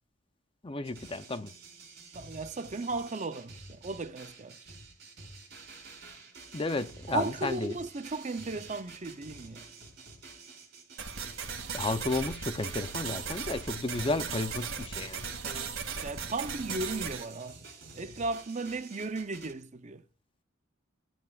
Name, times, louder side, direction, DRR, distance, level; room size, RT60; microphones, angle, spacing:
voice 1, 0.6-1.5 6.5-7.8 11.7-15.3, left 2 dB, 25° left, 0.5 m, -33 dB
sound 1, 0.8-19.5, right 3 dB, 50° right, 4.3 m, -50 dB
voice 2, 2.1-4.6 7.1-9.7 15.4-15.7 16.0-17.6 18.0-20.0, right 3 dB, 35° right, 0.6 m, -35 dB
sound 2, 11.0-17.2, right 6 dB, 85° right, 2.1 m, -37 dB
12.0 x 9.0 x 2.4 m
head